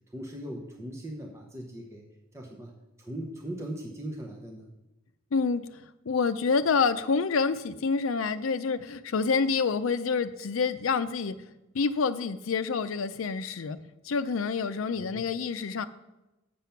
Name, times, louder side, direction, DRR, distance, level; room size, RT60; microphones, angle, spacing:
voice 1, 0.1-2.1 2.3-4.7 15.0-15.3, right 1 dB, 15° right, 0 dB, 0.9 m, -39 dB
voice 2, 5.3-11.4 11.7-13.8 14.0-15.9, left 5 dB, 75° left, 12 dB, 0.5 m, -27 dB
7.5 x 6.9 x 5.8 m, 0.99 s
head